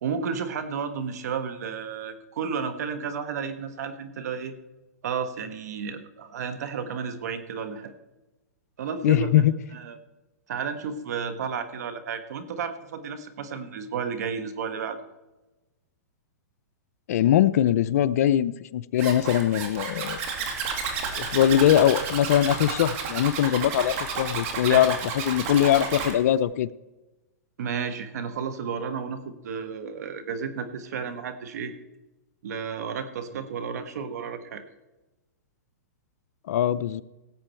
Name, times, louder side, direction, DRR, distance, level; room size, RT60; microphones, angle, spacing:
voice 1, 0.0-4.5 5.0-7.9 8.8-9.3 9.7-10.0 10.5-15.0 24.7-24.9 27.6-31.7 32.4-34.6, right 6 dB, 70° right, 10 dB, 1.3 m, -32 dB
voice 2, 9.0-9.6 17.1-20.2 21.2-24.9 25.2-26.7 36.5-37.0, left 11 dB, 60° left, 17 dB, 0.5 m, -21 dB
Zipper (clothing), 19.0-26.1, right 5 dB, 50° right, 2.3 m, -31 dB
17.5 x 7.7 x 4.5 m, 1.1 s
hypercardioid pair, 135°, 9 cm